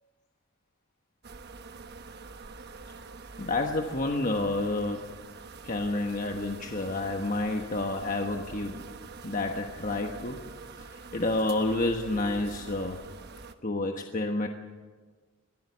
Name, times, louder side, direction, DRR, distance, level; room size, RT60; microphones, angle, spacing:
sound 1, 1.2-13.5, right 4 dB, 50° right, 1.2 m, -45 dB
voice 1, 3.4-5.2 5.6-8.9 9.2-10.4 11.1-13.0 13.6-14.5, left 2 dB, 40° left, 3 dB, 1.2 m, -29 dB
22.5 x 14.5 x 9.5 m, 1.4 s
head